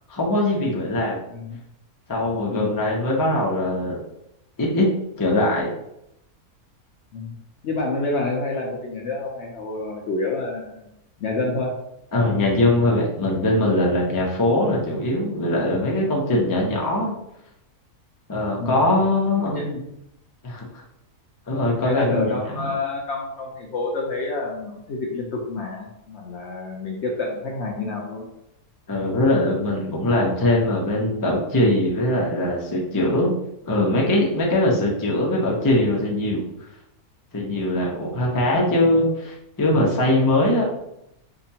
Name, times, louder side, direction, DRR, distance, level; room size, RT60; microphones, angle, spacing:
voice 1, 0.1-1.2 2.1-4.0 4.6-4.9 5.2-5.7 12.1-17.1 18.3-19.6 20.4-20.6 21.5-22.4 28.9-33.4 33.7-36.4 37.3-40.8, left 1 dB, 25° left, -3 dB, 0.4 m, -21 dB
voice 2, 1.3-1.6 2.5-2.8 7.1-7.3 7.6-10.9 11.2-11.7 18.6-18.9 19.3-19.9 21.8-28.3, left 3 dB, 60° left, -1 dB, 0.8 m, -28 dB
4.9 x 2.3 x 2.8 m, 0.82 s
omnidirectional pair, 1.6 m